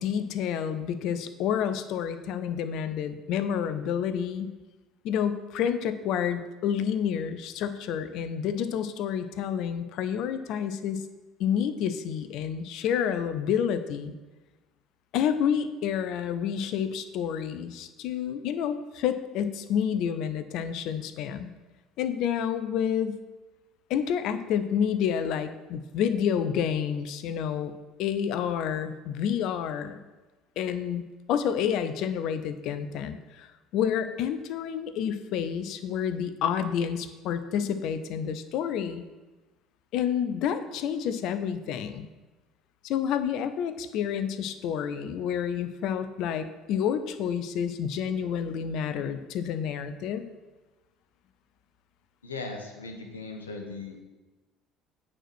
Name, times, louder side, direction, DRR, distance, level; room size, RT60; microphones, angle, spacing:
voice 1, 0.0-4.5 5.0-11.0 11.4-14.1 15.1-21.5 22.0-23.2 23.9-27.7 28.0-30.0 30.6-31.0 31.3-39.0 39.9-42.1 42.8-50.2, left 8 dB, 55° left, 11 dB, 0.6 m, -29 dB
voice 2, 52.2-54.0, left 3 dB, 80° left, 3 dB, 1.1 m, -38 dB
9.0 x 4.4 x 6.2 m, 1.2 s
figure-of-eight pair, 60°, 0 cm